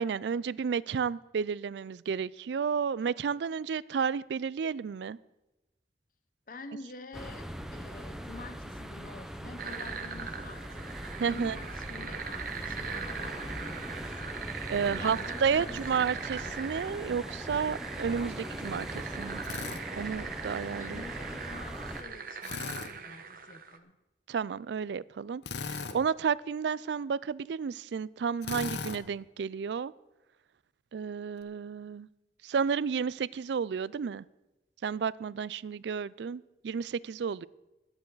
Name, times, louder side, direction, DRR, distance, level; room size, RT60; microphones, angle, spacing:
voice 1, 0.0-5.2 11.2-11.6 14.7-19.4 19.9-21.0 24.3-25.4 25.7-29.9 30.9-32.1 32.4-34.2 34.8-37.5, right 6 dB, 80° right, 0.4 m, -32 dB
voice 2, 6.5-7.5 7.7-14.2 14.9-15.8 20.7-24.0, left 3 dB, 50° left, 0.8 m, -48 dB
sound 1, 7.1-22.0, equal, 5° right, 0.8 m, -41 dB
sound 2, 9.6-23.8, right 6 dB, 55° right, 1.0 m, -41 dB
Drill, 19.4-19.8 22.4-22.9 25.4-26.0 28.4-29.0, left 5 dB, 80° left, 0.9 m, -37 dB
20.0 x 9.0 x 4.0 m
head